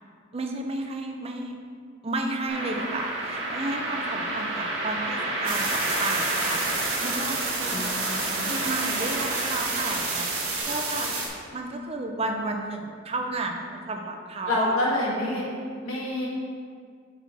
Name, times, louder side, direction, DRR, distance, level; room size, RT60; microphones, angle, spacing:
voice 1, 0.3-1.6 2.0-7.8 8.4-11.1 11.5-14.8, right 2 dB, 30° right, 3 dB, 0.5 m, -32 dB
sound 1, 2.5-10.6, right 2 dB, 55° right, 1.6 m, -31 dB
sound 2, 5.4-11.3, right 3 dB, 85° right, 1.6 m, -30 dB
voice 2, 7.6-8.6 14.5-15.5 15.8-16.3, left 1 dB, 80° left, -4 dB, 1.7 m, -28 dB
6.0 x 4.2 x 5.9 m, 2.1 s
head